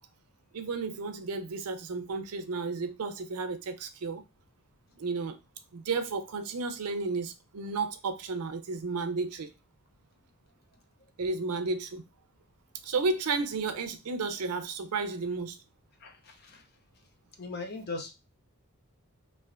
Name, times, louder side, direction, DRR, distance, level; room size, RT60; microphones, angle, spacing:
voice 1, 0.5-4.2 5.0-5.4 5.7-9.5 11.2-12.0 12.8-15.6, right 4 dB, 85° right, 0.5 m, -32 dB
voice 2, 16.0-16.6 17.4-18.1, left 3 dB, 45° left, 0.6 m, -39 dB
3.2 x 2.5 x 2.4 m
head